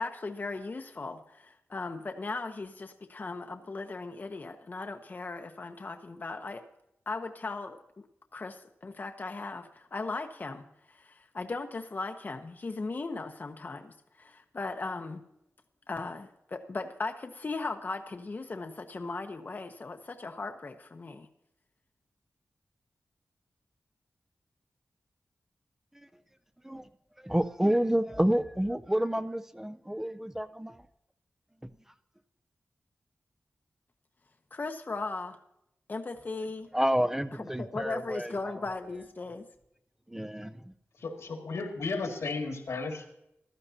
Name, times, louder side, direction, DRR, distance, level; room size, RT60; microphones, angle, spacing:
voice 1, 0.0-6.6 7.1-8.0 8.3-15.2 15.9-21.3 34.5-35.4 35.9-36.7 37.3-39.5, left 3 dB, 40° left, 0.8 m, -37 dB
voice 2, 27.2-30.8 36.7-38.3 40.1-40.6, equal, 10° right, 0.5 m, -29 dB
voice 3, 41.0-43.0, left 3 dB, 80° left, 1.9 m, -34 dB
15.5 x 12.0 x 2.8 m
wide cardioid pair, 95°, 5 cm